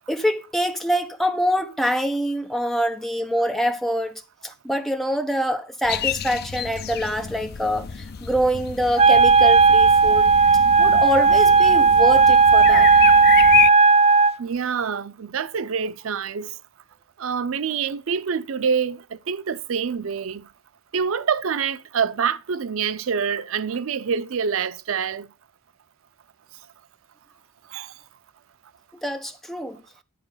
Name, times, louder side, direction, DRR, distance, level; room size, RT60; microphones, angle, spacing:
voice 1, 0.1-10.3 10.8-12.9 29.0-29.8, equal, ahead, 1.0 m, -25 dB
sound 1, 5.8-13.7, left 9 dB, 50° left, 0.4 m, -29 dB
Wind instrument woodwind instrument, 9.0-14.3, right 4 dB, 30° right, 0.5 m, -14 dB
voice 2, 14.4-16.6 17.2-20.4 20.9-25.3 27.7-27.9, right 6 dB, 80° right, 0.5 m, -26 dB
11.0 x 4.7 x 5.5 m
head